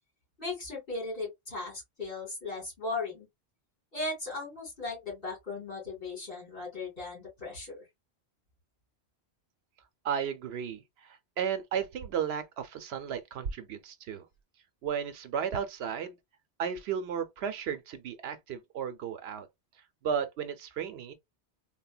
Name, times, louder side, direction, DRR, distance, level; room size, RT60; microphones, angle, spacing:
voice 1, 0.4-3.3 3.9-7.8, left 3 dB, 55° left, 2.6 m, -37 dB
voice 2, 10.0-14.3 14.8-16.2 16.6-19.5 20.0-21.1, right 8 dB, 75° right, 0.8 m, -34 dB
3.8 x 2.1 x 2.3 m
omnidirectional pair, 1.1 m